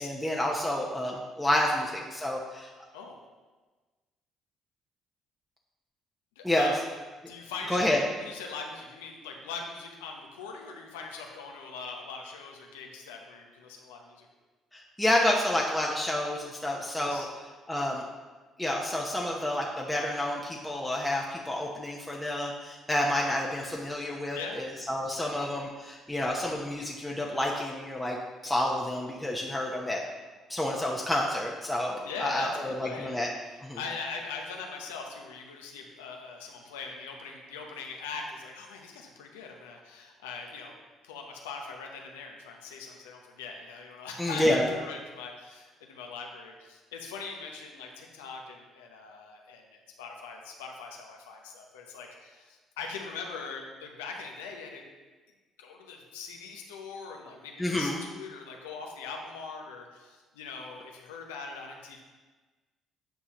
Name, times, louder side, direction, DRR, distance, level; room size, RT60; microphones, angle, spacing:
voice 1, 0.0-2.7 6.4-6.7 7.7-8.0 14.7-17.3 17.7-18.0 18.6-28.2 28.4-30.0 30.5-33.3 33.6-33.8 44.2-44.7 57.6-58.0, left 1 dB, 5° left, -2 dB, 1.0 m, -29 dB
voice 2, 6.4-6.8 7.3-7.9 8.2-14.3 16.6-17.3 24.3-24.6 32.0-33.2 33.5-40.7 41.0-54.8 55.6-62.0, left 4 dB, 85° left, 1 dB, 0.9 m, -41 dB
8.9 x 5.4 x 3.1 m, 1.3 s
hypercardioid pair, 50°, 0 cm